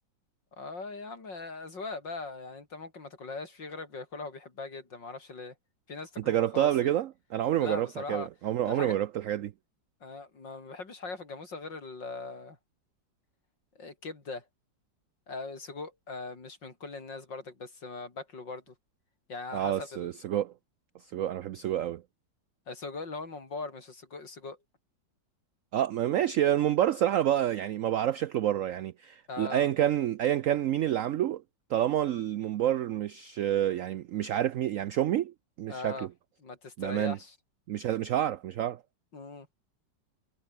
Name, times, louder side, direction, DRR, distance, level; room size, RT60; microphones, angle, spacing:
voice 1, 0.5-5.5 5.9-6.9 7.6-8.3 8.6-9.0 10.0-12.6 13.8-14.5 15.3-18.7 19.3-20.1 22.7-24.6 29.3-29.7 35.7-36.1 36.4-37.4 39.1-39.5, left 3 dB, 75° left, 4.7 m, -40 dB
voice 2, 6.2-9.5 19.5-20.5 21.1-22.0 25.7-31.4 31.7-36.1 36.8-37.2 37.7-38.8, right 11 dB, 80° right, 0.7 m, -28 dB
omnidirectional pair, 2.0 m